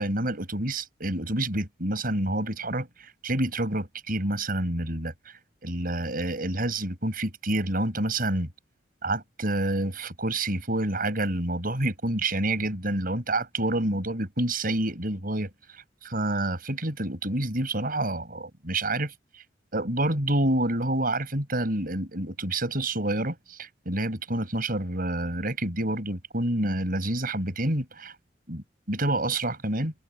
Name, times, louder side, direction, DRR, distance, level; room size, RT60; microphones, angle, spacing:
voice 1, 0.0-8.5 9.0-15.5 16.0-19.1 19.7-28.1 28.5-30.0, right 1 dB, 50° right, 7.0 m, -28 dB
head